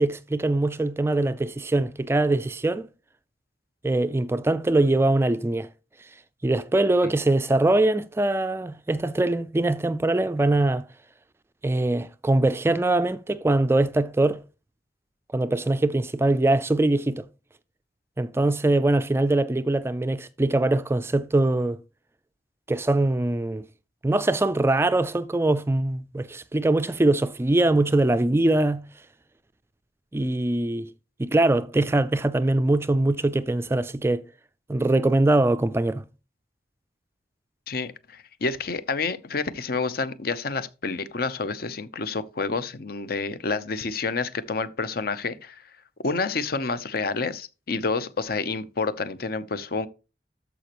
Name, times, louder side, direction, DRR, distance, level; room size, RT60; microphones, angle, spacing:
voice 1, 0.0-2.9 3.8-5.7 6.4-10.9 11.6-14.4 15.3-17.2 18.2-21.8 22.7-23.7 24.0-28.9 30.1-30.9 31.2-34.2 34.7-36.0, right 2 dB, 15° right, 0.3 m, -22 dB
voice 2, 37.7-45.6 46.0-49.9, left 4 dB, 55° left, 0.7 m, -29 dB
13.0 x 5.1 x 3.0 m
head